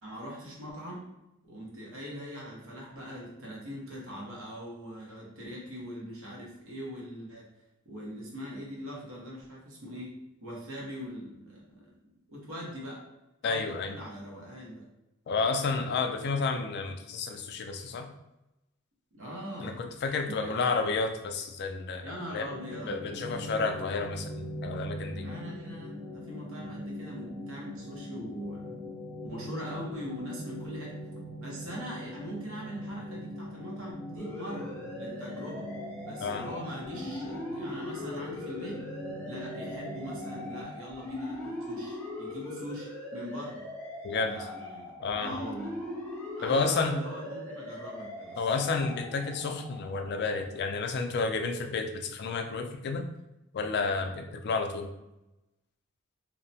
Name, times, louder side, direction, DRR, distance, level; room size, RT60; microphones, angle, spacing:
voice 1, 0.0-1.1 1.4-7.5 7.8-11.9 12.3-13.0 13.4-14.9 19.1-19.8 20.2-20.8 22.0-23.0 25.1-28.8 29.2-30.9 31.4-35.7 36.0-38.8 39.3-43.6 44.2-45.7 46.4-48.5, equal, 70° right, -3 dB, 0.9 m, -41 dB
voice 2, 13.4-14.0 15.3-18.1 19.6-22.5 22.9-25.3 36.2-36.5 44.0-44.4 45.0-45.3 46.4-47.0 48.4-53.0 53.5-54.9, left 4 dB, 50° left, 5 dB, 0.3 m, -31 dB
sound 1, 22.4-40.6, equal, 45° right, 0.7 m, -41 dB
sound 2, 34.2-50.6, left 1 dB, 5° left, 0.6 m, -41 dB
2.7 x 2.1 x 2.7 m, 0.92 s
head